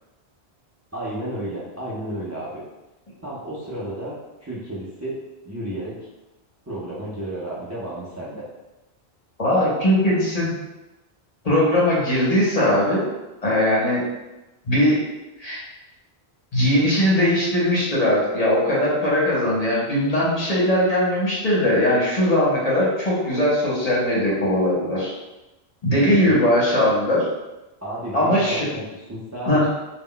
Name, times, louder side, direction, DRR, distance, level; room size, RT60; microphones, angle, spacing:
voice 1, 0.9-2.6 3.2-5.2 5.4-6.0 6.7-8.5 26.0-26.5 27.8-29.7, right 1 dB, 25° right, -8 dB, 0.3 m, -32 dB
voice 2, 9.4-10.5 11.4-13.1 13.4-14.1 14.7-15.0 15.4-15.6 16.5-25.1 25.8-27.3 28.1-28.7 29.5-29.7, left 1 dB, 40° left, -6 dB, 0.7 m, -20 dB
2.1 x 2.0 x 3.7 m, 1.0 s
omnidirectional pair, 1.1 m